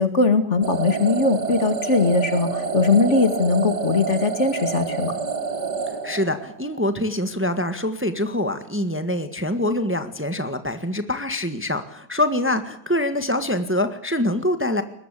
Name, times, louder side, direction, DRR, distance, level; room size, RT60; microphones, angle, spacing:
voice 1, 0.0-5.1, left 3 dB, 45° left, 10 dB, 2.3 m, -20 dB
sound 1, 0.6-6.8, right 5 dB, 85° right, 3.0 m, -28 dB
voice 2, 6.0-14.8, left 1 dB, 10° right, 9 dB, 1.6 m, -24 dB
22.0 x 20.5 x 8.5 m, 0.68 s
omnidirectional pair, 1.7 m